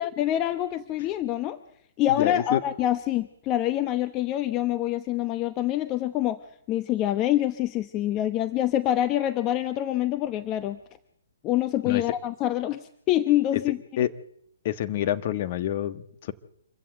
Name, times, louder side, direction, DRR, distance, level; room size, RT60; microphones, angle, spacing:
voice 1, 0.0-1.6 2.0-6.4 6.7-10.8 11.4-13.8, left 13 dB, 25° left, 11 dB, 0.9 m, -26 dB
voice 2, 2.2-2.6 11.8-12.0 14.0-14.1 14.6-16.3, left 11 dB, 40° left, 11 dB, 1.4 m, -27 dB
26.5 x 15.0 x 7.8 m, 0.71 s
hypercardioid pair, 145°, 0 cm